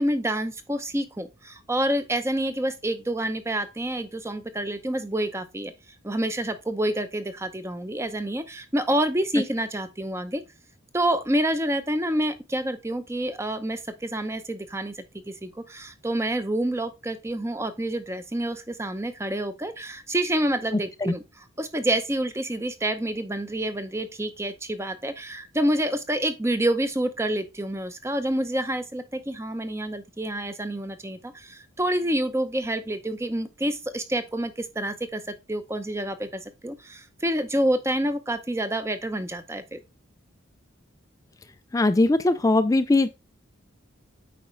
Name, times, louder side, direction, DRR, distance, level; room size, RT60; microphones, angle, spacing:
voice 1, 0.0-5.7 6.0-10.4 10.9-14.9 15.3-21.2 21.6-39.8, right 1 dB, 15° right, 0.6 m, -28 dB
voice 2, 41.7-43.1, left 2 dB, 15° left, 0.3 m, -20 dB
8.5 x 4.9 x 3.2 m
head